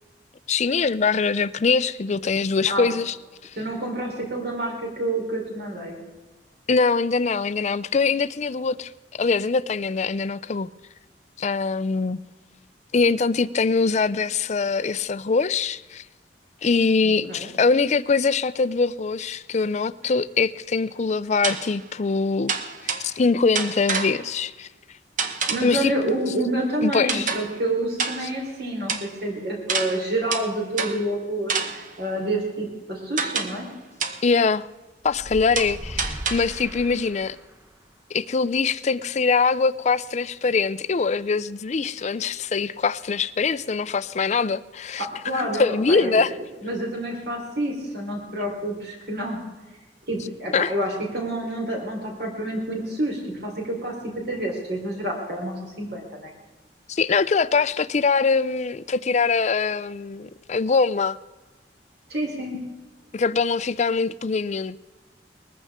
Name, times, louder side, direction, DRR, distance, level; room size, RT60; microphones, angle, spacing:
voice 1, 0.5-3.2 3.4-3.5 6.7-10.7 11.4-12.2 12.9-16.0 16.6-22.5 22.8-24.7 25.6-25.9 26.8-27.3 34.2-34.7 35.0-37.4 38.1-45.1 45.3-46.3 50.5-50.7 56.9-61.2 63.1-64.8, left 4 dB, 40° left, 0.5 m, -23 dB
voice 2, 3.6-6.0 17.0-17.5 25.5-33.7 45.2-49.5 50.1-53.9 54.3-56.3 62.1-62.6, right 1 dB, 65° right, 3.9 m, -28 dB
sound 1, 20.0-20.1 21.4-21.8 22.5-23.2 23.5-24.4 25.2-25.8 27.1-27.6 28.0-28.5 28.9-29.1 29.7-31.1 31.5-32.0 33.2-33.7 34.0-34.3 35.6-36.6, right 5 dB, 50° right, 1.1 m, -29 dB
sound 2, 35.0-37.7, equal, 15° right, 0.8 m, -38 dB
20.0 x 14.5 x 3.6 m
head